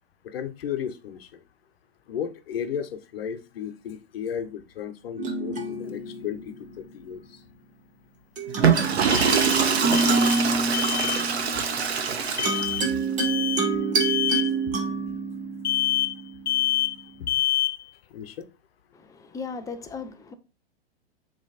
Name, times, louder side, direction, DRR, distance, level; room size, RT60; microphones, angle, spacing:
voice 1, 0.2-1.4 2.1-7.4 13.6-13.8 14.3-14.4 14.7-14.8 17.2-17.3 18.1-18.5, left 8 dB, 60° left, 1.1 m, -34 dB
sound 1, 5.2-7.0 8.4-16.9, right 4 dB, 25° right, 1.3 m, -28 dB
sound 2, 5.8-5.9 9.1-10.5 10.7-11.2 12.4-12.9 13.2-13.7 14.0-14.5 15.6-16.2 16.5-17.0 17.3-17.8, left 13 dB, 90° left, 0.5 m, -26 dB
Water / Toilet flush, 8.5-13.0, right 6 dB, 75° right, 1.2 m, -24 dB
voice 2, 18.9-20.3, left 5 dB, 10° left, 0.6 m, -37 dB
7.2 x 3.3 x 4.2 m
hypercardioid pair, 115°, 33 cm